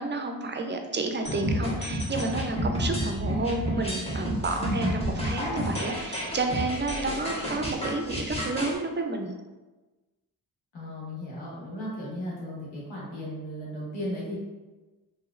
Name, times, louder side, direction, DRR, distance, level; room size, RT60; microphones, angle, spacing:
voice 1, 0.0-9.3, right 3 dB, 25° right, 4 dB, 0.4 m, -31 dB
sound 1, 1.2-8.7, equal, 15° left, 1.2 m, -30 dB
voice 2, 4.6-5.1 10.7-14.4, equal, 85° left, -6 dB, 1.2 m, -35 dB
2.9 x 2.8 x 2.4 m, 1.2 s
supercardioid pair, 40°, 42 cm